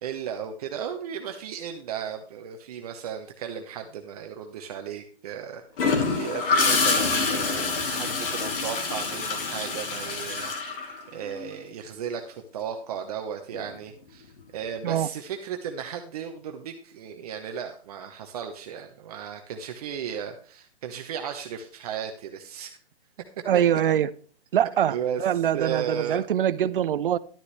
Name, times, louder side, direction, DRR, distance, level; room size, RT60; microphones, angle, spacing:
voice 1, 0.0-10.5 11.1-22.8 23.5-23.6 24.9-25.2 25.5-26.2, right 8 dB, 35° right, 5 dB, 1.0 m, -35 dB
Gurgling / Toilet flush, 5.8-11.5 13.5-13.8, left 4 dB, 55° left, 3.0 m, -26 dB
voice 2, 23.5-24.1 24.5-27.2, right 10 dB, 55° right, 17 dB, 0.6 m, -23 dB
12.0 x 9.5 x 3.2 m, 0.42 s
hypercardioid pair, 150°, 32 cm